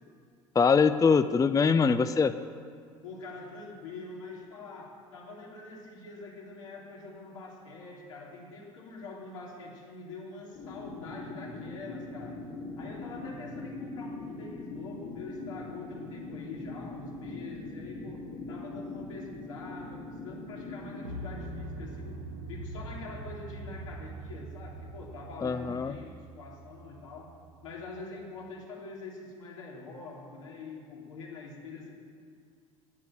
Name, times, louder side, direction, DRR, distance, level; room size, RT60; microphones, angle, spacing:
voice 1, 0.5-2.3 25.4-25.9, left 5 dB, 20° left, 12 dB, 0.5 m, -23 dB
voice 2, 3.0-12.4 12.8-22.2 22.5-27.3 27.6-31.9, left 3 dB, 85° left, -4 dB, 3.4 m, -44 dB
sound 1, 10.5-21.0, left 2 dB, 70° left, 3.7 m, -41 dB
sound 2, 21.0-27.8, right 2 dB, 85° right, 1.6 m, -43 dB
10.5 x 9.4 x 8.9 m, 2.2 s
hypercardioid pair, 65°, 16 cm